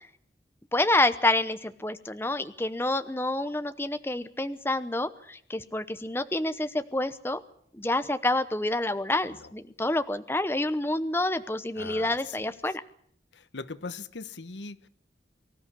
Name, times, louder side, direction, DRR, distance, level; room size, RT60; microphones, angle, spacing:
voice 1, 0.7-7.4 7.8-12.8, left 2 dB, 15° left, 10 dB, 0.8 m, -28 dB
voice 2, 11.8-12.5 13.3-14.9, left 4 dB, 85° left, 15 dB, 1.0 m, -41 dB
24.5 x 13.5 x 9.7 m, 0.64 s
head